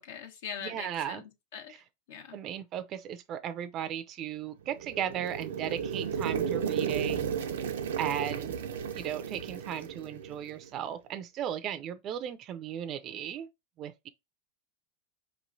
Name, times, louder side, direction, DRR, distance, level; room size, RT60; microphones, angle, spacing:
voice 1, 0.0-1.7 2.1-2.4, left 7 dB, 75° left, 1.2 m, -42 dB
voice 2, 0.6-1.2 2.3-7.3 7.6-7.7 8.0-8.6 8.9-13.5 13.8-14.1, right 10 dB, 35° right, 0.5 m, -36 dB
sound 1, 4.7-10.7, right 7 dB, 85° right, 0.5 m, -34 dB
4.9 x 3.0 x 2.6 m
supercardioid pair, 125°, 0 cm